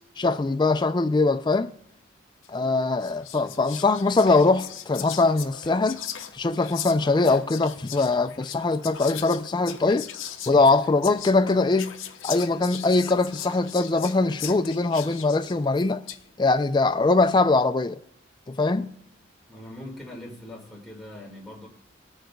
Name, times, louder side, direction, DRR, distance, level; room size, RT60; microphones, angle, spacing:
voice 1, 0.2-1.7 2.5-6.0 6.3-10.1 10.5-11.9 12.2-16.0 16.4-18.0 18.5-18.9, left 3 dB, 20° left, 0.3 m, -22 dB
Whispering, 2.4-2.6 3.0-16.3, left 10 dB, 75° left, 0.6 m, -39 dB
voice 2, 19.5-21.7, left 1 dB, ahead, 1.8 m, -41 dB
18.5 x 6.4 x 2.3 m
head